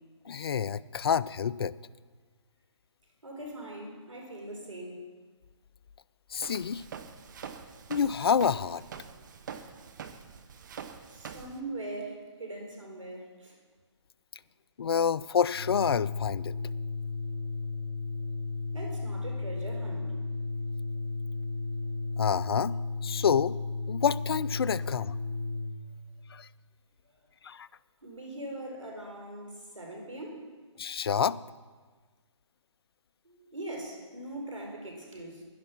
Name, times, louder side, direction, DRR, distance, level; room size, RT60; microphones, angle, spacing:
voice 1, 0.3-1.7 6.3-6.8 7.9-8.8 14.8-16.5 22.2-22.7 23.0-23.6 23.9-25.1 26.3-26.5 27.4-27.7 30.8-31.4, left 7 dB, 50° left, 18 dB, 0.4 m, -28 dB
voice 2, 3.2-5.1 11.1-13.6 18.7-20.2 28.0-30.4 33.2-35.4, right 1 dB, 85° right, 2 dB, 4.0 m, -41 dB
Walk footsteps, 6.4-11.6, right 7 dB, 40° right, 0.9 m, -45 dB
Organ, 15.5-25.8, left 3 dB, 5° left, 4.3 m, -34 dB
11.0 x 11.0 x 6.0 m, 1.4 s
figure-of-eight pair, 150°, 16 cm